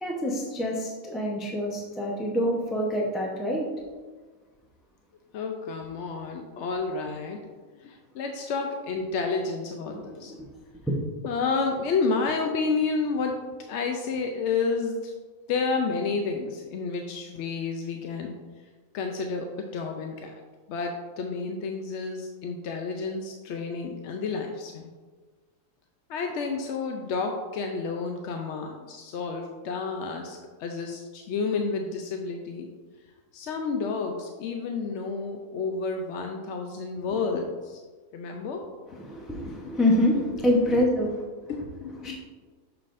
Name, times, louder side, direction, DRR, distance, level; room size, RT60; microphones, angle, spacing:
voice 1, 0.0-3.7 9.9-10.0 10.3-10.4 10.9-11.0 38.9-41.2 41.5-42.2, left 1 dB, ahead, -3 dB, 0.6 m, -26 dB
voice 2, 5.3-7.4 7.8-10.3 11.2-13.4 13.7-15.1 15.5-18.3 18.9-20.3 20.7-24.9 26.1-32.7 33.3-37.8 38.1-38.6 39.4-39.7 41.5-42.2, left 4 dB, 65° left, 3 dB, 0.8 m, -30 dB
6.8 x 5.8 x 2.5 m, 1.4 s
omnidirectional pair, 1.5 m